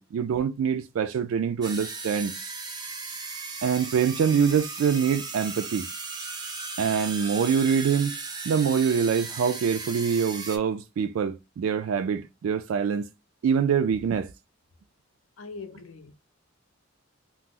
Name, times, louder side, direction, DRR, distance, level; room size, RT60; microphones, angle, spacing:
voice 1, 0.0-2.4 3.6-5.9 6.8-8.2 8.5-13.1 13.4-14.3, right 7 dB, 75° right, 0.3 m, -25 dB
sound 1, 1.6-10.6, right 4 dB, 20° right, 0.5 m, -36 dB
voice 2, 15.4-16.1, left 4 dB, 80° left, 0.6 m, -41 dB
2.9 x 2.0 x 3.6 m
head